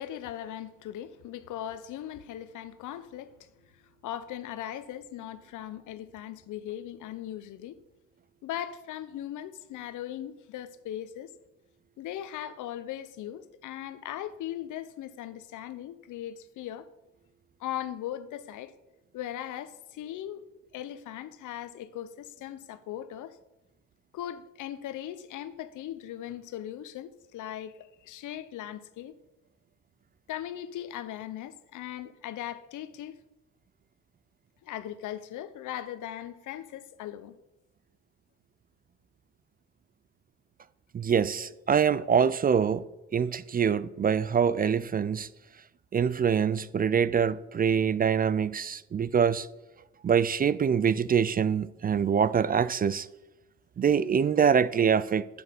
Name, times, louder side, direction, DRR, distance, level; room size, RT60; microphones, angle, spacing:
voice 1, 0.0-3.5 3.7-7.8 8.4-11.3 12.0-16.9 17.6-18.7 19.1-20.4 20.7-23.4 24.1-29.2 30.3-33.2 34.6-37.4, left 11 dB, 80° left, 0.8 m, -39 dB
voice 2, 40.9-42.8 43.1-45.3 45.9-49.5 50.0-53.1 53.8-55.3, right 7 dB, 30° right, 0.4 m, -24 dB
8.0 x 7.8 x 6.8 m
cardioid pair, 90°, 30 cm